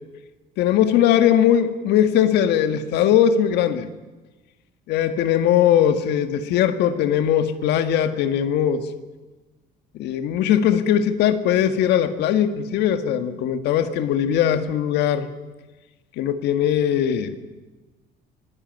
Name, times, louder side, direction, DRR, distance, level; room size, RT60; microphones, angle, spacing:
voice 1, 0.6-3.9 4.9-8.9 9.9-15.3 16.2-17.4, left 9 dB, 85° left, 9 dB, 1.9 m, -20 dB
24.5 x 18.5 x 9.3 m, 1.2 s
cardioid pair, 110°, 17 cm